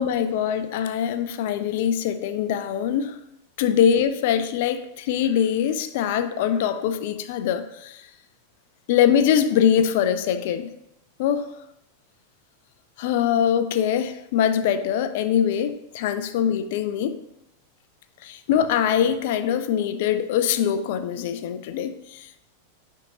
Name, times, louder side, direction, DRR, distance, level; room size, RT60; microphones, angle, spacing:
voice 1, 0.0-3.1 3.6-8.0 8.9-10.7 11.2-11.5 13.0-17.2 18.2-22.4, left 9 dB, 50° left, 0.4 m, -23 dB
9.5 x 3.6 x 2.8 m
figure-of-eight pair, 90°, 0 cm